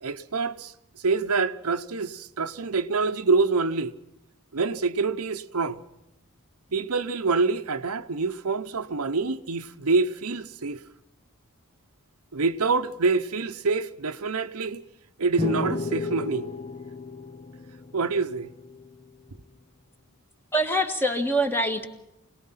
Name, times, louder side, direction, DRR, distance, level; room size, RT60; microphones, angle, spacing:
voice 1, 0.0-3.9 4.5-5.8 6.7-10.8 12.3-14.8 15.2-16.4 17.9-18.5, right 4 dB, 75° right, 0.9 m, -26 dB
sound 1, 15.4-18.9, left 2 dB, 25° left, 0.7 m, -33 dB
voice 2, 20.5-21.9, equal, 10° left, 1.8 m, -24 dB
25.5 x 19.0 x 5.7 m
head